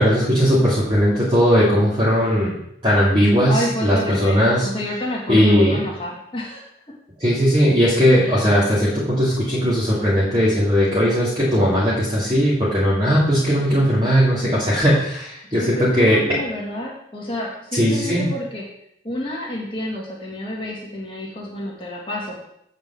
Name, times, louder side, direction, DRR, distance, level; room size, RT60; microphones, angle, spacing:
voice 1, 0.0-2.6 2.8-4.7 5.3-5.8 7.2-16.2 17.7-18.3, equal, 25° right, -9 dB, 2.3 m, -18 dB
voice 2, 3.5-6.6 8.2-8.4 15.5-18.6 19.0-22.4, left 1 dB, 30° left, -3 dB, 2.0 m, -29 dB
8.0 x 5.2 x 6.8 m, 0.75 s
head